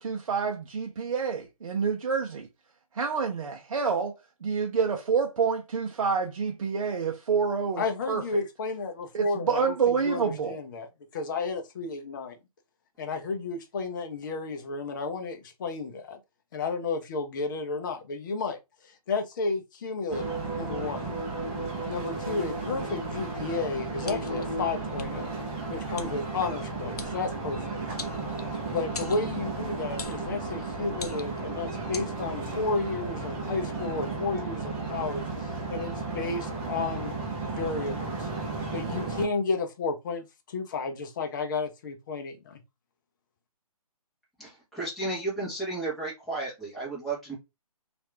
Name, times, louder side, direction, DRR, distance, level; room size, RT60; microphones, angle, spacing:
voice 1, 0.0-2.5 2.9-4.1 4.4-8.2 9.1-10.6, right 5 dB, 60° right, 0.6 m, -28 dB
voice 2, 7.8-12.4 13.0-16.2 16.5-18.6 18.8-20.2 20.5-21.0 21.9-25.3 25.7-27.8 28.7-37.1 37.5-38.3 38.7-42.6, left 4 dB, 30° left, 0.6 m, -32 dB
sound 1, 20.1-39.2, right 3 dB, 15° right, 0.7 m, -34 dB
sound 2, 24.0-24.4 25.0-25.1 26.0-26.1 27.0-27.1 28.0-28.6 28.9-29.2 30.0-30.2 30.9-31.4 31.9-32.1, left 4 dB, 90° left, 0.7 m, -39 dB
voice 3, 44.7-47.3, right 3 dB, ahead, 1.1 m, -32 dB
2.8 x 2.5 x 3.2 m
figure-of-eight pair, 150°, 19 cm